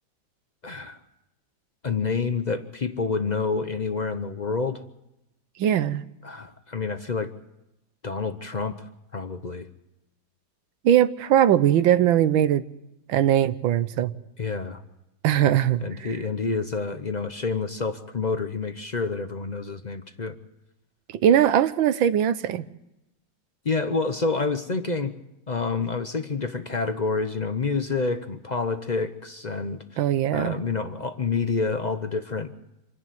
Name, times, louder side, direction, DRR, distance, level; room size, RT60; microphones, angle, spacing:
voice 1, 0.6-1.0 1.8-4.8 6.2-7.3 8.0-9.7 14.4-14.8 15.3-15.5 15.8-20.4 23.6-25.1 25.5-29.8 30.3-32.5, left 4 dB, 55° left, 9 dB, 0.4 m, -28 dB
voice 2, 5.6-6.0 10.8-12.6 13.1-14.1 15.2-16.1 21.2-22.7 30.0-30.6, right 10 dB, 85° right, 13 dB, 1.6 m, -20 dB
26.5 x 11.0 x 9.2 m, 0.92 s
omnidirectional pair, 2.1 m